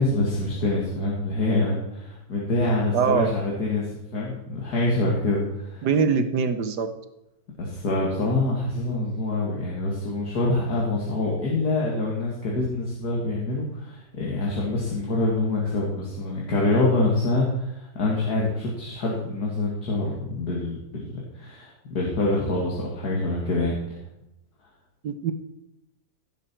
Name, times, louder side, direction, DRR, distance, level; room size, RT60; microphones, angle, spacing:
voice 1, 0.0-5.9 7.6-24.0, left 2 dB, 65° left, -4 dB, 2.4 m, -26 dB
voice 2, 2.9-3.3 5.8-6.9 25.0-25.3, right 6 dB, 75° right, 9 dB, 1.5 m, -22 dB
16.0 x 7.6 x 4.5 m, 0.89 s
omnidirectional pair, 1.8 m